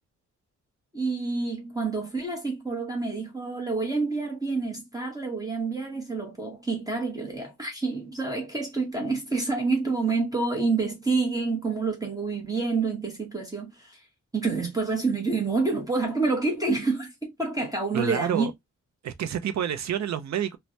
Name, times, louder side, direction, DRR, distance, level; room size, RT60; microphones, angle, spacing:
voice 1, 0.9-14.0 14.3-18.5, right 3 dB, 10° right, 0.8 m, -28 dB
voice 2, 17.9-18.5 19.0-20.6, right 9 dB, 65° right, 0.4 m, -28 dB
3.1 x 2.1 x 2.6 m
wide cardioid pair, 130°, 30 cm